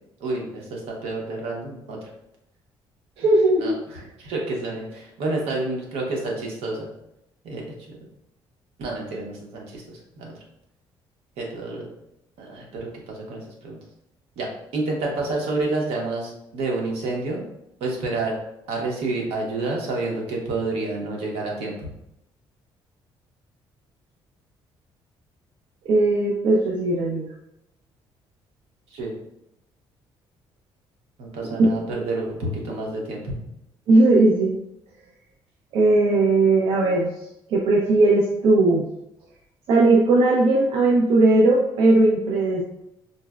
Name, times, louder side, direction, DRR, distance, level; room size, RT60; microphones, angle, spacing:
voice 1, 0.2-2.0 3.6-6.9 7.4-8.0 8.8-10.3 11.4-11.9 12.4-13.8 14.4-17.4 17.8-18.3 18.7-21.9 28.9-29.1 31.2-33.4, right 2 dB, 90° right, -1 dB, 0.8 m, -29 dB
voice 2, 3.2-3.8 25.9-27.3 33.9-34.6 35.7-37.1 37.5-38.9 39.7-42.6, right 2 dB, 70° right, -3 dB, 0.5 m, -18 dB
3.9 x 2.0 x 2.3 m, 0.82 s
cardioid pair, 180°, 10 cm